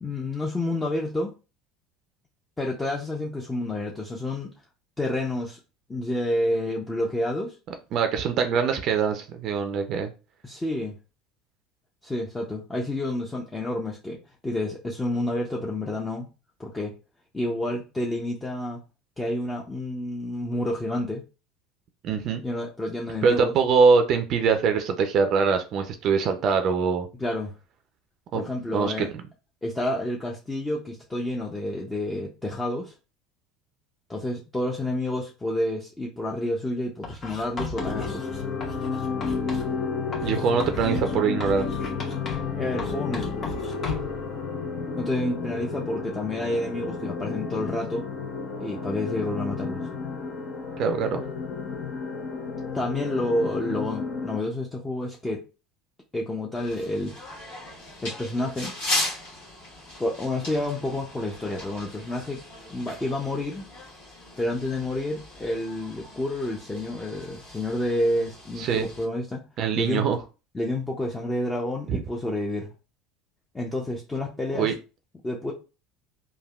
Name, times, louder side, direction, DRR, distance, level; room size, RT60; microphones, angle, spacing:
voice 1, 0.0-1.3 2.6-4.5 5.0-5.6 5.9-7.6 10.4-10.9 12.0-16.3 16.6-16.9 17.3-18.8 19.2-21.2 22.4-23.5 27.2-27.5 28.3-29.1 29.6-32.9 34.1-38.3 42.5-43.2 45.0-48.0 48.6-49.9 52.7-55.4 56.1-57.2 58.0-58.7 60.0-62.4 62.7-63.7 64.4-69.4 69.7-70.0 70.5-72.7 73.5-74.7 75.2-75.5, left 1 dB, 15° left, -2 dB, 0.6 m, -29 dB
voice 2, 7.9-10.1 22.0-22.4 23.2-27.1 28.3-28.5 28.7-29.1 40.2-41.7 50.8-51.3 68.6-68.9 69.6-70.2 71.9-72.0 74.6-74.7, right 5 dB, 50° right, 6 dB, 0.4 m, -23 dB
Writing, 37.0-39.7 40.1-42.5 42.8-44.2, left 4 dB, 40° left, 1.0 m, -36 dB
sound 1, 37.8-54.4, left 4 dB, 55° left, 0.6 m, -32 dB
sound 2, 56.5-69.0, left 2 dB, 75° left, 1.3 m, -37 dB
3.3 x 2.2 x 2.3 m, 0.32 s
hypercardioid pair, 80°, 0 cm